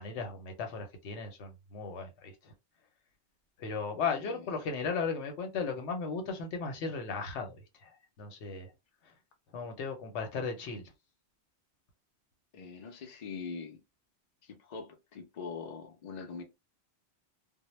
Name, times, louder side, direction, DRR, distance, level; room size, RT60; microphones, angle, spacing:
voice 1, 0.0-2.5 3.6-8.7 9.0-9.1 9.5-10.9, left 5 dB, 85° left, 1.0 m, -36 dB
voice 2, 4.2-4.5 12.5-13.8 14.4-16.4, left 5 dB, 50° left, 0.6 m, -43 dB
2.1 x 2.1 x 3.0 m
omnidirectional pair, 1.1 m